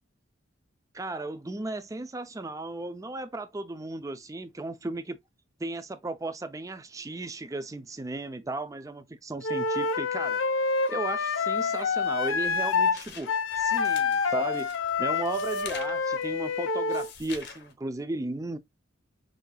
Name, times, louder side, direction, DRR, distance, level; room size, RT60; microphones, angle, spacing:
voice 1, 0.9-5.2 5.6-10.4 10.9-14.7 15.0-18.6, right 2 dB, 15° right, 0.5 m, -35 dB
Wind instrument woodwind instrument, 9.4-13.0 13.3-17.1, left 5 dB, 70° left, 0.6 m, -27 dB
sound 1, 12.1-17.7, left 6 dB, 55° left, 0.9 m, -46 dB
6.3 x 2.8 x 2.2 m
head